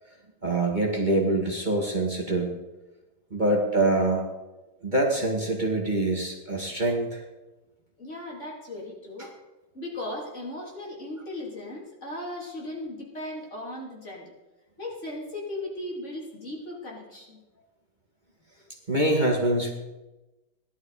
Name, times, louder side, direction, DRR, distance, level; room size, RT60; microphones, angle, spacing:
voice 1, 0.4-2.5 3.3-4.2 4.8-7.2 9.2-9.3 18.9-19.7, right 2 dB, 30° right, -1 dB, 2.2 m, -25 dB
voice 2, 8.0-9.3 9.7-14.3 14.8-17.4, left 1 dB, 45° left, -3 dB, 3.5 m, -37 dB
16.5 x 12.0 x 5.0 m, 1.1 s
omnidirectional pair, 1.7 m